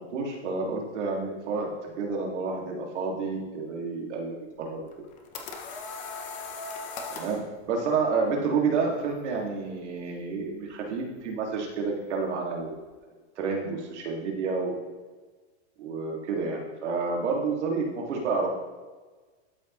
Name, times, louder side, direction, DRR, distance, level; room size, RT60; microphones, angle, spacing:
voice 1, 0.0-1.7 2.0-4.8 7.1-7.4 7.7-12.8 13.4-14.8 15.8-18.5, right 4 dB, 85° right, 0 dB, 2.1 m, -29 dB
sound 1, 4.9-7.4, left 4 dB, 20° left, 0.6 m, -38 dB
12.0 x 4.8 x 3.0 m, 1.3 s
supercardioid pair, 155°, 35 cm